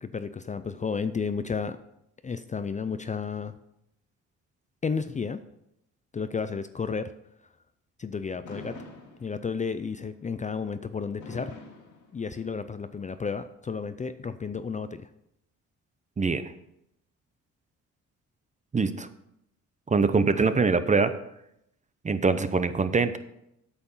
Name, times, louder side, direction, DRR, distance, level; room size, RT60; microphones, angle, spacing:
voice 1, 0.0-1.8 2.2-3.5 4.8-5.4 6.1-7.1 8.0-8.8 9.2-11.5 12.1-15.1, left 5 dB, 25° left, 11 dB, 0.5 m, -32 dB
Fireworks, 8.4-9.7 11.2-12.7, left 3 dB, 75° left, 2.2 m, -45 dB
voice 2, 16.2-16.5 18.7-19.1 19.9-21.1 22.0-23.2, right 4 dB, 25° right, 11 dB, 0.7 m, -23 dB
8.7 x 6.9 x 5.6 m, 0.80 s
cardioid pair, 90°, 30 cm